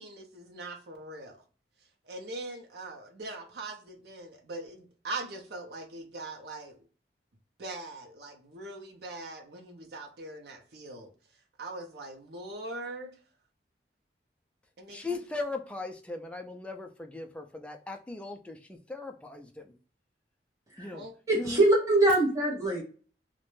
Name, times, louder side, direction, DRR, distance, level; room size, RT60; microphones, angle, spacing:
voice 1, 0.0-1.4 2.1-6.8 7.6-11.1 11.6-13.1 14.8-15.0 20.9-21.1, right 2 dB, 65° right, 2 dB, 0.6 m, -41 dB
voice 2, 14.9-19.7 20.8-21.0 21.3-21.6, left 3 dB, 5° left, 4 dB, 0.3 m, -38 dB
voice 3, 21.3-22.8, right 2 dB, 20° right, -2 dB, 0.9 m, -23 dB
2.5 x 2.1 x 3.1 m, 0.39 s
head